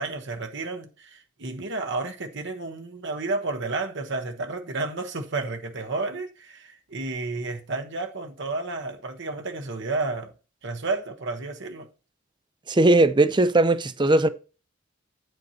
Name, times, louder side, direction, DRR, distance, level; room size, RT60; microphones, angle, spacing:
voice 1, 0.0-10.3 10.6-11.9, right 3 dB, 60° right, 1.1 m, -31 dB
voice 2, 12.7-14.3, right 2 dB, 25° right, 0.5 m, -19 dB
9.3 x 7.9 x 2.8 m
head